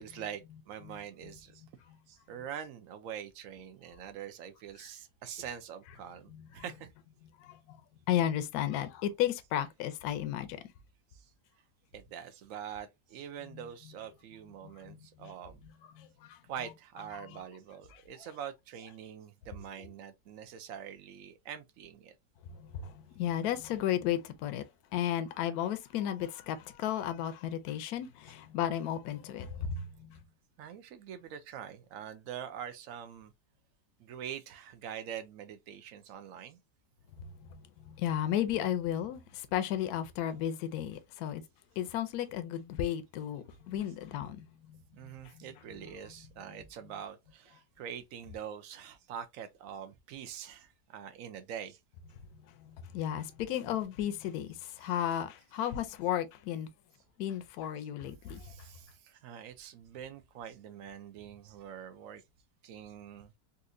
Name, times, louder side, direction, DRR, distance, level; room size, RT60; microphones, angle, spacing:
voice 1, 0.0-1.6 2.1-6.9 11.1-11.3 11.9-15.6 16.4-22.2 30.6-33.3 34.0-36.6 44.9-51.8 54.8-54.9 58.3-62.2 62.6-63.4, right 9 dB, 75° right, 0.7 m, -44 dB
voice 2, 7.4-7.8 8.1-10.7 13.5-13.6 14.6-15.3 16.0-16.4 17.9-18.0 22.5-24.7 24.9-30.2 37.2-41.4 41.8-45.5 52.6-56.7 57.2-58.5, left 11 dB, 70° left, 1.0 m, -34 dB
4.1 x 2.5 x 2.5 m
omnidirectional pair, 1.9 m